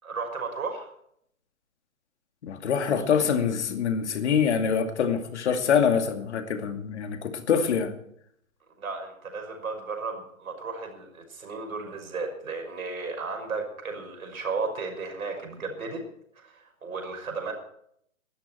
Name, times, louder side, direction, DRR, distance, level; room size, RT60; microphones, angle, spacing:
voice 1, 0.0-0.9 8.8-16.0 16.4-17.5, right 4 dB, 80° right, 5.9 m, -34 dB
voice 2, 2.4-7.9, left 7 dB, 55° left, 2.5 m, -25 dB
20.0 x 13.0 x 4.5 m
hypercardioid pair, 155°, 42 cm